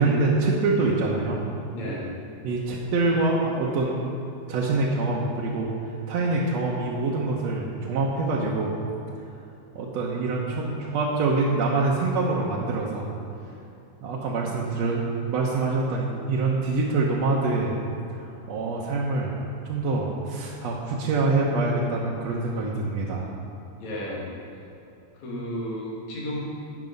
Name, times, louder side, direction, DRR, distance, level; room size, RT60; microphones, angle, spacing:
voice 1, 0.0-1.4 2.4-4.0 4.5-5.7 6.1-8.7 9.7-13.1 14.0-17.8 18.2-19.4 19.6-23.3, right 3 dB, 70° right, -4 dB, 2.1 m, -25 dB
voice 2, 1.7-2.1 23.8-24.6 25.1-26.4, equal, 70° left, -5 dB, 3.5 m, -33 dB
12.0 x 8.3 x 5.3 m, 2.8 s
omnidirectional pair, 3.4 m